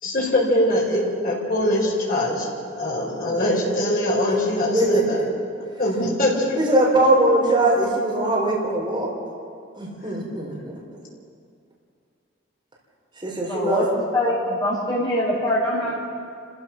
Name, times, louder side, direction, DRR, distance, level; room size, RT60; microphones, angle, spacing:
voice 1, 0.0-2.5 2.8-5.2 5.8-6.7, left 1 dB, 45° left, -4 dB, 4.8 m, -22 dB
voice 2, 4.7-5.2 6.5-9.1 9.7-10.8 13.2-13.9, right 2 dB, 25° right, -4 dB, 4.2 m, -21 dB
voice 3, 13.5-15.9, left 1 dB, 20° left, -6 dB, 6.7 m, -23 dB
30.0 x 15.0 x 6.0 m, 2.4 s
head